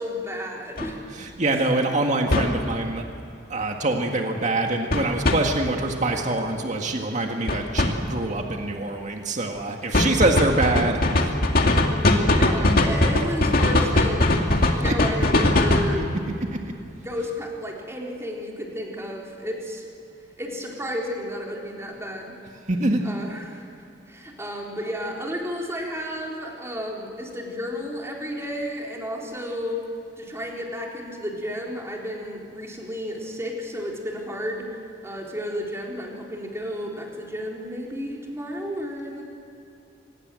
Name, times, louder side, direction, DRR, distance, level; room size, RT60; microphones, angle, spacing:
voice 1, 0.0-1.0 12.3-14.4 14.8-16.1 17.0-19.9 20.4-22.4 23.0-23.7 24.1-29.8 30.2-34.7 35.0-39.2, equal, 15° right, -1 dB, 4.0 m, -32 dB
sound 1, 0.8-0.9 2.3-2.5 4.9-5.4 7.5-7.9 9.9-15.9, left 2 dB, 55° left, 2.3 m, -19 dB
voice 2, 1.1-3.0 3.5-11.3 14.6-14.9 15.9-16.1 16.5-16.7 22.7-23.1, right 2 dB, 40° right, 3 dB, 1.9 m, -25 dB
25.5 x 20.0 x 7.7 m, 2.7 s
head